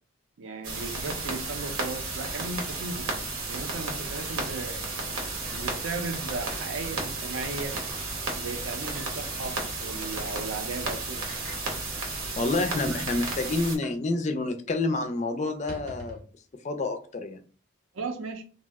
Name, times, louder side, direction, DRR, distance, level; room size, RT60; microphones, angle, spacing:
voice 1, 0.4-3.1 3.5-4.9 5.5-7.8 8.4-11.2 12.9-13.1 17.9-18.4, right 3 dB, 70° right, 0.5 m, -36 dB
sound 1, 0.6-13.8, right 3 dB, 90° right, 0.8 m, -33 dB
sound 2, 5.1-6.2 6.5-6.7 7.1-7.2 7.7-8.0 8.9-9.1 10.1-10.3 11.3-11.6 12.4-12.5 12.7-13.0 13.8-14.1 14.3-14.4 14.8-15.0 15.5-16.3, equal, 25° right, 0.7 m, -45 dB
voice 2, 12.4-16.2 16.6-17.4, left 2 dB, 35° left, 0.3 m, -28 dB
2.6 x 2.0 x 3.4 m
head